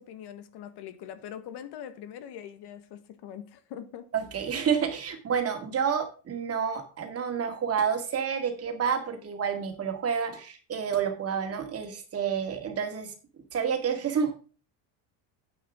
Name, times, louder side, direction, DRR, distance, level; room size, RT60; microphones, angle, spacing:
voice 1, 0.0-4.0, left 9 dB, 55° left, 1.6 m, -42 dB
voice 2, 4.1-13.1 13.5-14.3, right 7 dB, 30° right, 2.1 m, -29 dB
9.8 x 9.2 x 3.7 m
cardioid pair, 150°, 47 cm